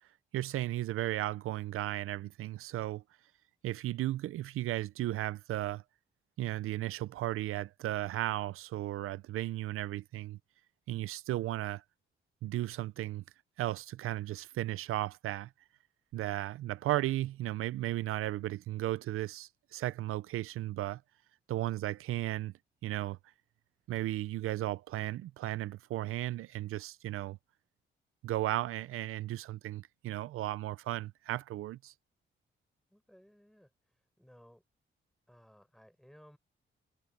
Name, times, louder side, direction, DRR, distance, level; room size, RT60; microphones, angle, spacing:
voice 1, 0.3-3.0 3.6-5.8 6.4-10.4 10.9-11.8 12.4-13.2 13.6-15.5 16.1-21.0 21.5-22.5 22.8-23.2 23.9-27.4 28.2-31.9, right 15 dB, 90° right, 0.5 m, -35 dB
voice 2, 32.9-34.6 35.3-36.4, equal, ahead, 7.5 m, -60 dB
cardioid pair, 80°, 21 cm